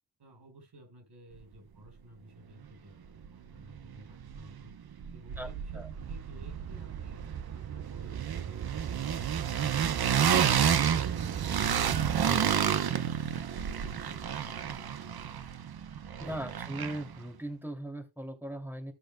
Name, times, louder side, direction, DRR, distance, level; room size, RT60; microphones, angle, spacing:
voice 1, 0.2-4.8 5.1-7.2, right 1 dB, 90° right, 5.3 m, -54 dB
sound 1, 3.2-3.3 3.6-4.7 5.0-17.2, right 8 dB, 65° right, 0.9 m, -30 dB
sound 2, 5.2-12.4, right 9 dB, 40° right, 0.4 m, -39 dB
voice 2, 12.2-12.6 16.2-18.9, right 1 dB, 5° right, 2.7 m, -38 dB
15.5 x 6.3 x 2.3 m
wide cardioid pair, 90°, 39 cm